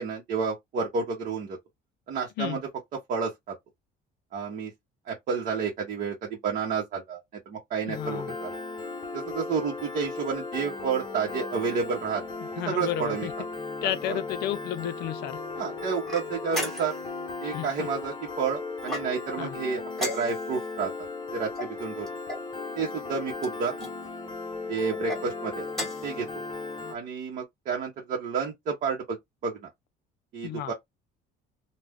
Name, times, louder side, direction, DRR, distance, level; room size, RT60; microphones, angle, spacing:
voice 1, 0.0-1.6 2.1-2.6 3.1-3.6 4.3-4.7 5.0-7.2 7.5-8.6 9.1-12.2 12.6-13.3 14.1-14.2 15.6-16.9 17.4-20.9 21.3-22.1 22.8-23.8 24.7-25.7 26.0-26.3 26.9-29.2 29.4-29.7 30.3-30.7, right 5 dB, 45° right, 0.9 m, -30 dB
voice 2, 7.9-8.4 12.4-13.3 13.8-15.4 17.4-17.9 19.4-19.6 30.4-30.7, left 11 dB, 65° left, 0.5 m, -32 dB
Piano, 7.9-27.0, left 3 dB, 25° left, 0.7 m, -36 dB
sound 1, 16.1-17.1 18.8-19.4 19.9-20.7 21.5-22.5 23.4-23.9 24.9-25.2 25.7-26.2, left 1 dB, ahead, 1.1 m, -35 dB
2.5 x 2.2 x 3.4 m
cardioid pair, 155°, 18 cm